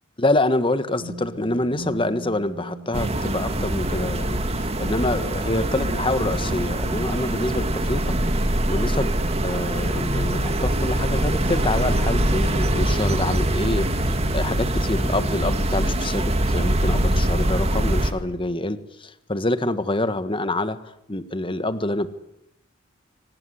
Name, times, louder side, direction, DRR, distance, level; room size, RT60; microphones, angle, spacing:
voice 1, 0.2-8.1 8.7-9.1 9.4-20.8 21.1-22.1, left 2 dB, 25° left, 12 dB, 1.5 m, -26 dB
sound 1, 1.0-6.4, left 1 dB, 75° right, 7.4 m, -40 dB
sound 2, 2.9-18.1, right 1 dB, 35° right, 2.3 m, -23 dB
24.0 x 19.5 x 10.0 m, 0.80 s
head